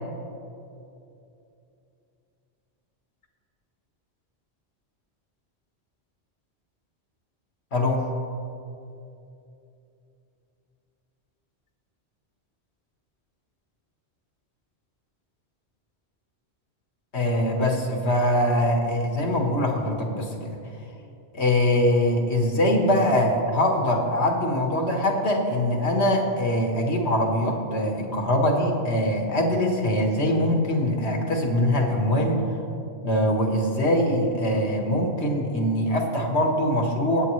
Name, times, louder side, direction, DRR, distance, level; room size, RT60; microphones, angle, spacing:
voice 1, 7.7-8.1 17.1-20.6 21.3-32.4 33.0-37.3, left 1 dB, 75° left, 1 dB, 1.8 m, -23 dB
21.0 x 8.6 x 3.2 m, 2.8 s
omnidirectional pair, 1.1 m